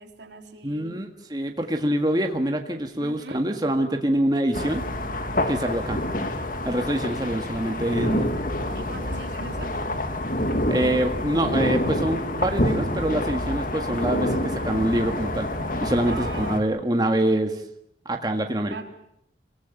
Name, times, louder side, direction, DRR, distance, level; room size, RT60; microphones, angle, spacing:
voice 1, 0.0-1.0 3.0-3.4 8.7-9.7 16.0-16.7 18.7-18.9, right 3 dB, 85° right, 4 dB, 3.3 m, -39 dB
voice 2, 0.6-4.8 5.5-6.0 6.7-8.3 10.7-15.5 15.8-17.6 18.1-18.7, right 1 dB, 25° right, 4 dB, 1.8 m, -25 dB
sound 1, 4.5-16.6, left 1 dB, 50° left, 2.2 m, -27 dB
26.5 x 18.0 x 9.1 m, 0.75 s
head